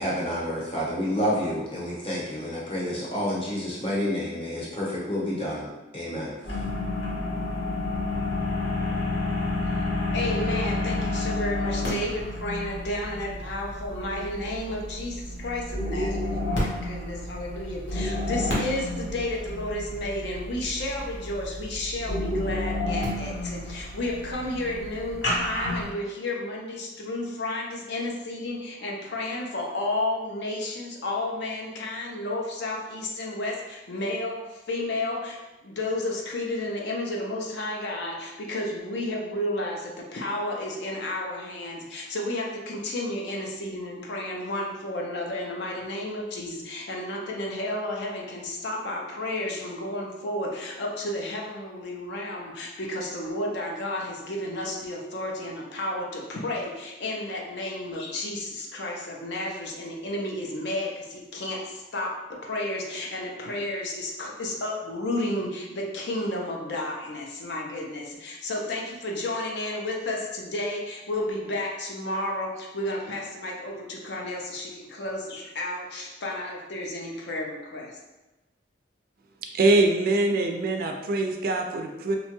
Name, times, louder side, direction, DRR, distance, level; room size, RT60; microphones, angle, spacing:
voice 1, 0.0-5.7 5.9-6.3, equal, 30° left, -6 dB, 0.8 m, -29 dB
Solder fan vibration, 6.4-25.9, left 2 dB, 80° left, 1.0 m, -30 dB
voice 2, 10.1-78.0, left 1 dB, 60° left, -1 dB, 0.5 m, -32 dB
voice 3, 79.5-82.2, right 2 dB, 50° right, 3 dB, 0.3 m, -23 dB
2.9 x 2.2 x 2.9 m, 1.1 s
head